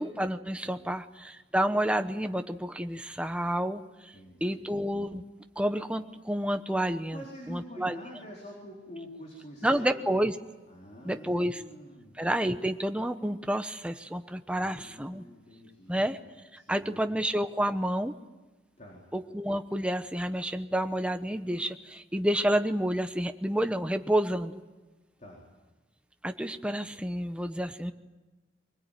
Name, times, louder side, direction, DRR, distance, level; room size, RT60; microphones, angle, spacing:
voice 1, 0.0-4.1 4.4-5.2 5.6-7.2 7.5-8.0 9.6-10.3 11.0-11.6 12.2-15.2 15.9-16.2 16.5-18.1 19.1-24.6 26.2-27.9, right 1 dB, 5° right, 8 dB, 1.0 m, -29 dB
voice 2, 4.1-4.7 7.1-10.1 10.7-12.1 14.5-16.2 16.6-17.1 18.8-19.1 25.2-25.5, equal, 35° left, -2 dB, 4.5 m, -47 dB
24.5 x 20.5 x 9.3 m, 1.2 s
head